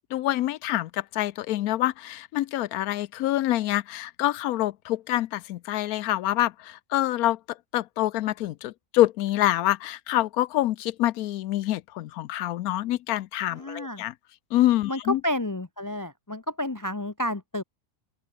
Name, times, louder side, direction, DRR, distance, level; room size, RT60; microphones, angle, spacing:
voice 1, 0.1-7.4 7.7-14.1 14.5-15.2, left 14 dB, 75° left, 1.1 m, -26 dB
voice 2, 13.5-14.0 14.9-17.6, left 1 dB, 20° left, 0.5 m, -30 dB
open air
omnidirectional pair, 1.6 m